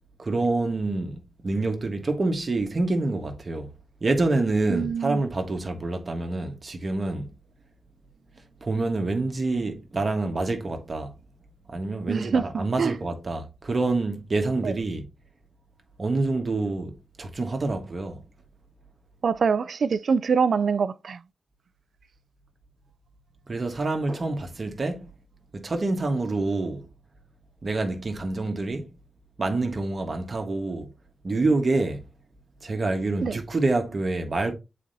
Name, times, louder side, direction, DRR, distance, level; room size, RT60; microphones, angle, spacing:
voice 1, 0.2-3.7 4.0-7.3 8.6-11.1 11.7-15.1 16.0-18.2 23.5-25.1 25.5-26.8 27.6-28.9 29.4-30.9 31.2-32.0 32.6-34.5, right 2 dB, 45° right, 1.3 m, -27 dB
voice 2, 4.7-5.2 12.1-13.0 14.6-14.7 19.2-21.2 33.2-33.4, right 5 dB, 70° right, 0.4 m, -24 dB
8.4 x 4.3 x 2.7 m
wide cardioid pair, 90°, 0 cm